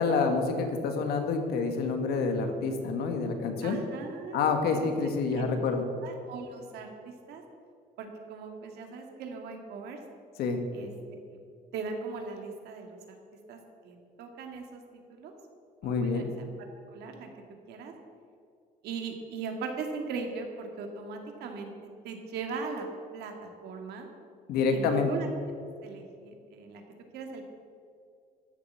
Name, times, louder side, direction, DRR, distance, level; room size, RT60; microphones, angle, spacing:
voice 1, 0.0-3.8 4.3-5.8 10.4-10.6 15.8-16.3 24.5-25.1, left 4 dB, 75° left, 5 dB, 1.7 m, -28 dB
voice 2, 3.6-5.5 6.0-6.9 7.3-7.4 8.0-10.0 10.7-11.4 11.7-13.2 13.5-13.6 13.8-14.8 15.1-15.3 15.8-16.5 16.9-17.3 17.7-17.9 18.8-21.7 22.0-22.9 23.1-24.1 24.7-25.3 25.8-26.8 27.1-27.4, right 4 dB, 85° right, 3 dB, 2.0 m, -39 dB
13.0 x 7.8 x 7.1 m, 2.4 s
cardioid pair, 165°, 16 cm